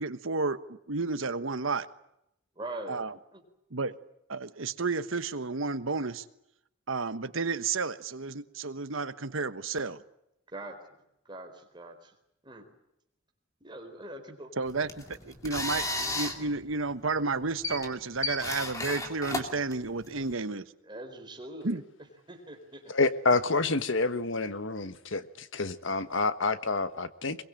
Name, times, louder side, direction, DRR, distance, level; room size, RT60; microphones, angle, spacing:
voice 1, 0.0-1.9 2.9-3.1 3.7-3.9 4.3-6.2 6.9-10.0 14.6-20.7 21.6-21.8, right 3 dB, 75° right, 12 dB, 1.2 m, -32 dB
voice 2, 2.6-3.4 10.5-11.0 11.3-12.1 12.4-12.7 13.6-14.5 20.8-21.8 22.3-22.9, right 1 dB, 20° right, 4 dB, 4.3 m, -43 dB
sound 1, 14.7-20.3, left 2 dB, 15° left, 2.7 m, -35 dB
voice 3, 22.9-27.4, left 3 dB, 65° left, 12 dB, 1.3 m, -28 dB
22.5 x 22.5 x 9.0 m, 0.81 s
head